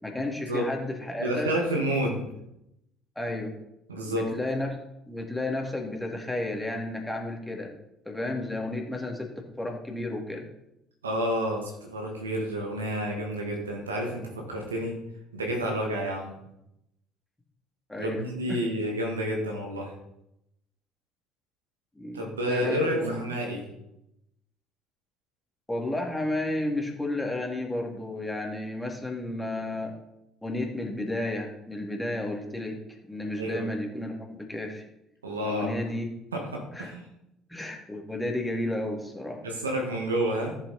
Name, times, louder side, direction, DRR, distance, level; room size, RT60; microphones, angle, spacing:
voice 1, 0.0-1.5 3.2-3.5 4.1-4.8 5.1-7.7 8.1-9.3 9.6-10.4 17.9-18.2 18.5-18.6 21.9-22.2 22.5-23.2 25.7-29.9 30.4-34.8 35.4-36.1 36.7-36.9 37.5-39.4, left 1 dB, 10° left, 1 dB, 2.6 m, -32 dB
voice 2, 1.2-2.2 3.9-4.3 11.0-15.0 15.3-16.4 18.0-19.9 22.1-23.7 33.3-33.7 35.2-35.8 36.3-37.1 39.4-40.6, right 1 dB, 85° right, 1 dB, 1.8 m, -29 dB
14.5 x 7.2 x 4.3 m, 0.85 s
figure-of-eight pair, 55°, 0 cm